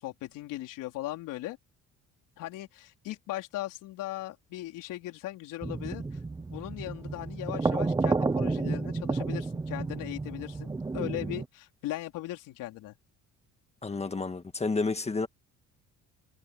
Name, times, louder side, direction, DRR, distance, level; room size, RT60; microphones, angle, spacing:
voice 1, 0.0-1.6 2.4-6.2 6.5-12.9, left 16 dB, 85° left, 4.3 m, -38 dB
sound 1, 5.6-11.4, right 3 dB, 10° right, 0.6 m, -31 dB
voice 2, 13.8-15.3, left 3 dB, 20° left, 1.8 m, -30 dB
cardioid pair, 125°, 31 cm